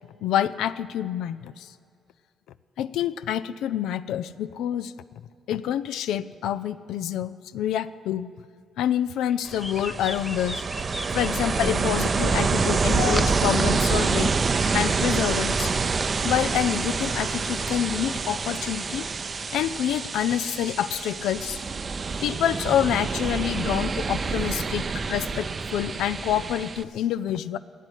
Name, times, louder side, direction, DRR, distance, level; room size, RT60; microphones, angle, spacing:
voice 1, 0.2-1.5 2.8-4.9 5.5-8.3 8.8-10.6 11.1-14.3 14.7-15.7 16.2-19.1 19.5-21.6 22.2-24.8 25.1-27.6, left 10 dB, 85° left, 13 dB, 0.4 m, -27 dB
sound 1, 9.3-11.6 12.5-13.6 14.0-16.1, left 1 dB, 5° left, 0.6 m, -38 dB
Ocean, 9.5-26.8, right 4 dB, 35° right, 0.5 m, -27 dB
Bass guitar, 11.6-17.9, left 5 dB, 65° left, 0.8 m, -42 dB
15.0 x 10.0 x 8.0 m, 2.5 s
cardioid pair, 90°, 0 cm